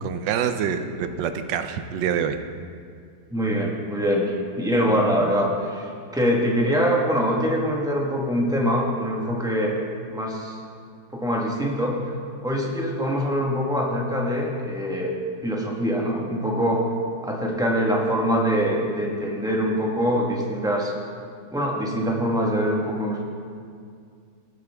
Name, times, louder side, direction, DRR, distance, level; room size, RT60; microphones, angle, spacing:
voice 1, 0.0-2.4, right 8 dB, 85° right, 9 dB, 1.3 m, -26 dB
voice 2, 3.3-9.8 10.1-10.6 11.1-11.9 12.4-15.1 15.4-16.9 17.2-20.9 21.5-23.2, equal, ahead, -2 dB, 1.2 m, -24 dB
16.5 x 8.1 x 3.5 m, 2.2 s
omnidirectional pair, 1.9 m